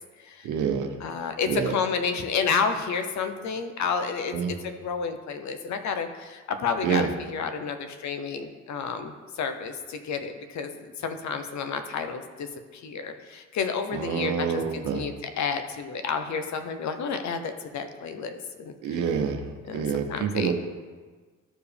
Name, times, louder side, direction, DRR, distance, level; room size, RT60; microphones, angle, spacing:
voice 1, 0.4-0.9 1.5-1.8 4.3-4.5 6.8-7.1 13.9-15.0 18.8-19.5 19.7-20.5, right 7 dB, 90° right, 6 dB, 0.9 m, -27 dB
voice 2, 1.0-19.0 19.7-20.5, left 5 dB, 65° left, 7 dB, 0.9 m, -31 dB
13.5 x 4.8 x 3.4 m, 1.4 s
cardioid pair, 90°, 30 cm